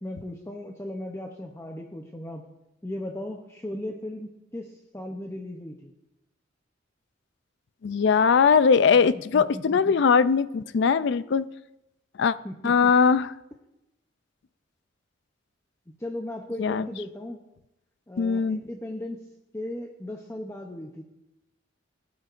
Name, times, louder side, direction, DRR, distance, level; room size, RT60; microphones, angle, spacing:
voice 1, 0.0-2.5 2.8-5.9 9.1-9.9 12.4-12.9 16.0-17.4 18.1-19.2 19.5-21.0, left 1 dB, 15° left, 2 dB, 0.6 m, -37 dB
voice 2, 7.8-11.5 12.2-12.3 12.6-13.3 16.6-16.9 18.2-18.6, left 5 dB, 60° left, 16 dB, 0.4 m, -20 dB
17.5 x 9.4 x 2.5 m, 0.91 s
head